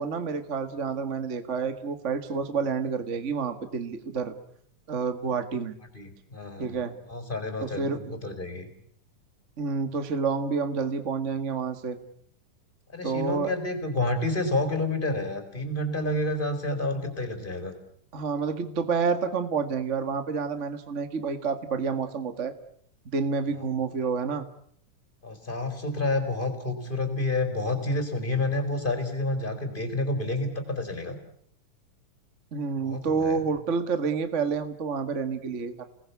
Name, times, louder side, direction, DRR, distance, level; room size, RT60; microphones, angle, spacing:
voice 1, 0.0-4.3 4.9-5.7 6.6-6.9 7.6-8.2 9.6-12.0 13.0-13.5 18.1-22.5 23.1-24.4 32.5-35.8, right 5 dB, 30° right, 9 dB, 1.3 m, -29 dB
voice 2, 5.9-8.7 12.9-17.7 23.6-23.7 25.2-31.2 32.8-33.4, left 2 dB, 15° left, 8 dB, 4.4 m, -29 dB
30.0 x 20.0 x 8.4 m, 0.67 s
omnidirectional pair, 3.9 m